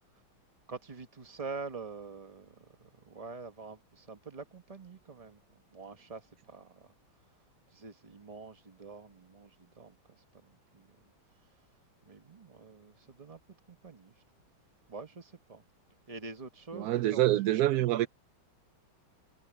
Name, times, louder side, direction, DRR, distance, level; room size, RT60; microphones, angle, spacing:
voice 1, 0.7-5.4 5.7-6.9 7.7-11.1 12.0-13.4 13.7-14.2 14.9-15.6 16.1-17.8, right 4 dB, 20° right, 1.1 m, -46 dB
voice 2, 16.7-18.1, right 14 dB, 90° right, 0.8 m, -26 dB
omnidirectional pair, 2.2 m